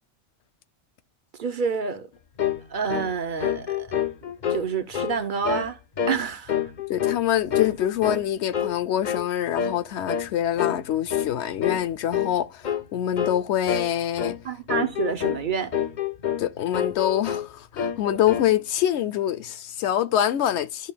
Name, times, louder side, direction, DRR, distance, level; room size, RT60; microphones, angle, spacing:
voice 1, 1.4-2.1 2.7-3.9 4.2-5.8 6.1-6.5 14.4-15.7, right 6 dB, 50° right, 0.8 m, -28 dB
sound 1, 2.4-2.6 2.9-3.1 3.4-4.6 4.9-5.2 5.4-5.7 6.0-6.2 6.5-7.2 7.5-8.3 8.5-8.8 9.0-9.3 9.6-9.8 10.1-10.3 10.6-10.8 11.1-11.3 11.6-11.8 12.1-12.4 12.6-12.8 13.2-13.4 13.7-13.9 14.2-14.4 14.7-15.4 15.7-16.5 16.7-17.5 17.8-18.5, left 9 dB, 50° left, 0.7 m, -27 dB
voice 2, 6.9-14.4 16.4-20.9, left 11 dB, 75° left, 0.9 m, -25 dB
12.5 x 5.3 x 2.2 m
omnidirectional pair, 1.2 m